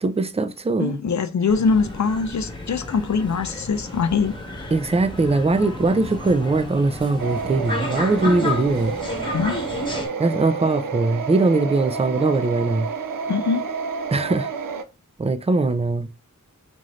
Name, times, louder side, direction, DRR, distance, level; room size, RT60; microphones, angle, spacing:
voice 1, 0.0-1.0 4.7-8.9 10.2-12.9 14.1-14.5 15.2-16.1, right 3 dB, 20° right, 0.4 m, -21 dB
voice 2, 0.8-4.7 5.6-5.7 8.4-8.5 9.3-9.6 13.3-13.7, left 5 dB, 65° left, 0.5 m, -23 dB
sound 1, 1.5-10.1, left 1 dB, 15° left, 1.0 m, -32 dB
sound 2, 7.2-14.8, right 5 dB, 85° right, 0.5 m, -30 dB
3.7 x 2.6 x 3.1 m
wide cardioid pair, 50°, 32 cm